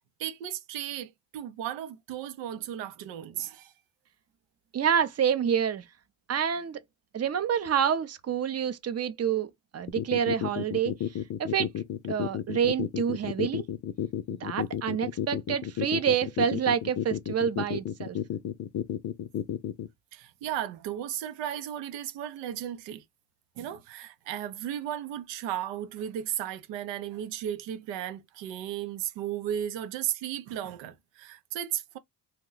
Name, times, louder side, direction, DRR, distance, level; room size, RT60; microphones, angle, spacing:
voice 1, 0.2-3.7 20.1-23.0 23.6-32.0, right 10 dB, 90° right, 0.7 m, -35 dB
voice 2, 4.7-5.8 6.3-6.8 7.1-9.5 9.7-10.9 11.4-11.7 12.1-13.7 14.3-18.2, right 8 dB, 35° right, 0.6 m, -27 dB
sound 1, 9.9-19.9, left 10 dB, 45° left, 0.5 m, -31 dB
2.8 x 2.2 x 3.8 m
cardioid pair, 90°, 42 cm